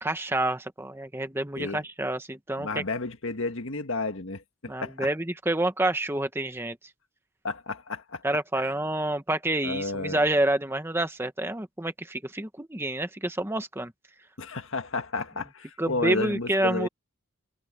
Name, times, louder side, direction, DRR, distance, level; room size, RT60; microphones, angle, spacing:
voice 1, 0.0-2.8 4.7-6.8 8.2-13.9 15.8-16.9, right 1 dB, 10° right, 1.0 m, -28 dB
voice 2, 2.6-5.1 7.4-8.2 8.6-8.7 9.6-10.2 14.4-16.9, left 3 dB, 65° left, 1.8 m, -32 dB
head